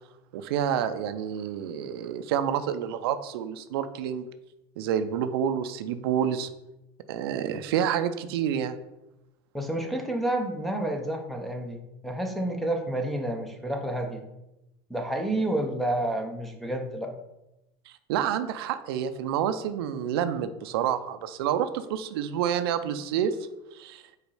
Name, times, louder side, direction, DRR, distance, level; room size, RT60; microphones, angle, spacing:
voice 1, 0.3-4.3 4.8-6.5 7.1-8.7 17.9-23.4 23.7-24.0, right 9 dB, 90° right, 10 dB, 0.5 m, -28 dB
voice 2, 9.5-14.2 14.9-17.1, right 1 dB, ahead, 4 dB, 0.8 m, -29 dB
5.2 x 4.2 x 4.8 m, 0.93 s
supercardioid pair, 130°, 12 cm